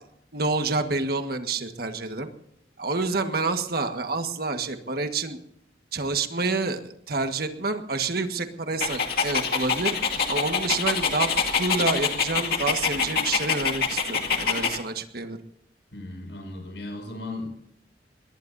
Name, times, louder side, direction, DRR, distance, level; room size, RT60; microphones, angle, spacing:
voice 1, 0.3-2.3 2.8-5.4 5.9-9.9 10.3-11.3 11.6-15.4, right 3 dB, 60° right, 7 dB, 1.6 m, -28 dB
Dog, 8.8-14.8, left 6 dB, 60° left, 2.3 m, -26 dB
voice 2, 15.9-17.5, left 2 dB, 90° left, 2 dB, 5.9 m, -36 dB
23.5 x 21.0 x 2.7 m, 0.78 s
head